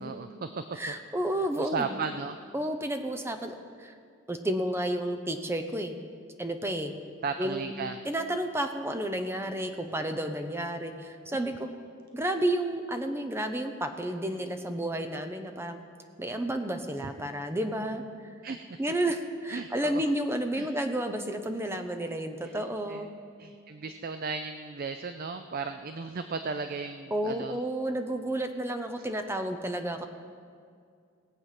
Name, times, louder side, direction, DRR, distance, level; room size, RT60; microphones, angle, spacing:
voice 1, 0.0-0.9 1.6-2.4 7.2-8.0 18.4-18.6 19.5-20.0 20.6-20.7 21.7-21.8 22.4-22.6 22.9-23.0 23.4-27.6, right 4 dB, 45° right, 8 dB, 0.4 m, -35 dB
voice 2, 0.7-2.0 2.5-3.9 4.3-6.0 6.4-7.0 7.4-7.7 8.0-11.7 12.1-15.8 16.2-18.3 18.8-23.1 27.1-30.1, right 1 dB, 10° right, 6 dB, 0.8 m, -31 dB
19.5 x 7.8 x 5.9 m, 2.3 s
head